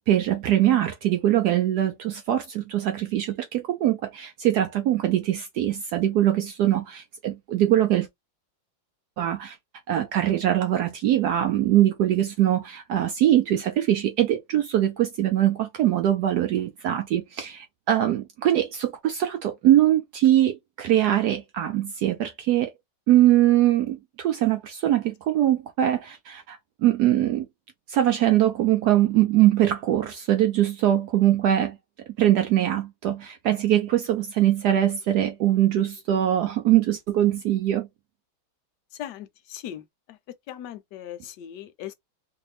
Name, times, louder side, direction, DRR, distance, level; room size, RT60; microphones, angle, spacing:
voice 1, 0.0-8.1 9.2-9.6 9.9-22.7 23.1-27.5 27.9-31.8 32.2-37.9, right 12 dB, 80° right, 0.9 m, -22 dB
voice 2, 39.5-39.8 40.5-41.9, left 11 dB, 70° left, 1.1 m, -38 dB
3.2 x 2.7 x 3.2 m
omnidirectional pair, 2.2 m